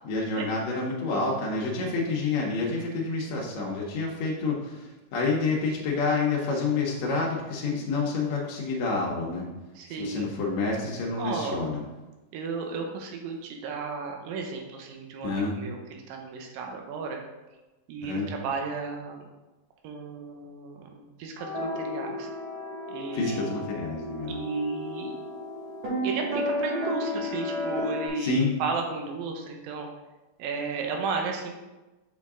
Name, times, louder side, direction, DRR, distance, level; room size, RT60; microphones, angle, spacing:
voice 1, 0.0-9.4 9.9-11.8 15.2-15.6 18.0-18.3 23.1-24.4 28.2-28.5, left 3 dB, 85° left, -3 dB, 1.5 m, -28 dB
voice 2, 9.8-10.3 11.2-11.6 12.3-17.2 17.9-19.3 19.8-22.3 22.9-23.5 24.3-25.1 26.0-29.9 30.4-31.6, right 4 dB, 75° right, 2 dB, 2.4 m, -34 dB
sound 1, 21.4-28.1, left 1 dB, 60° right, 3.7 m, -33 dB
6.4 x 5.8 x 3.7 m, 1.1 s
omnidirectional pair, 4.6 m